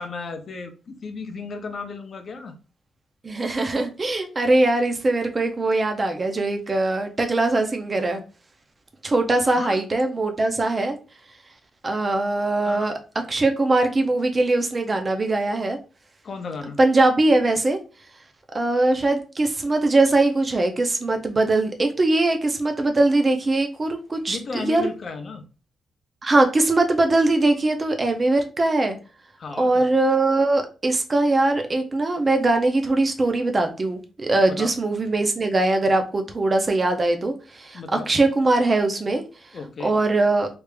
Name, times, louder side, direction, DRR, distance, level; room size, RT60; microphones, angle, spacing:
voice 1, 0.0-2.5 9.2-9.8 12.6-12.9 13.2-13.3 16.2-16.8 24.3-25.4 29.4-29.9 34.5-34.8 37.7-38.1 39.5-40.0, left 4 dB, 35° left, 6 dB, 0.5 m, -34 dB
voice 2, 3.2-8.2 9.0-11.0 11.8-12.9 13.3-15.8 16.8-17.8 18.5-24.8 26.2-29.0 29.6-39.2 39.8-40.5, right 2 dB, 20° right, 5 dB, 0.5 m, -21 dB
3.3 x 2.4 x 3.3 m, 0.34 s
wide cardioid pair, 180°, 0 cm